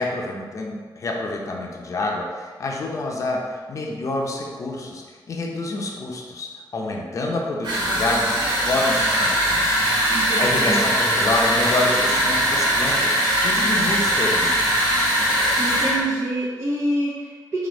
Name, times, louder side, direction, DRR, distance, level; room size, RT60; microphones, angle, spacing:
voice 1, 0.0-9.6 10.4-13.1 13.4-14.9, left 2 dB, 45° left, 0 dB, 0.7 m, -27 dB
sound 1, 7.6-16.0, equal, 75° right, 1.3 m, -21 dB
voice 2, 10.1-10.8 15.6-17.7, right 1 dB, 40° right, -8 dB, 0.9 m, -26 dB
4.1 x 2.8 x 4.5 m, 1.5 s
wide cardioid pair, 130°, 8 cm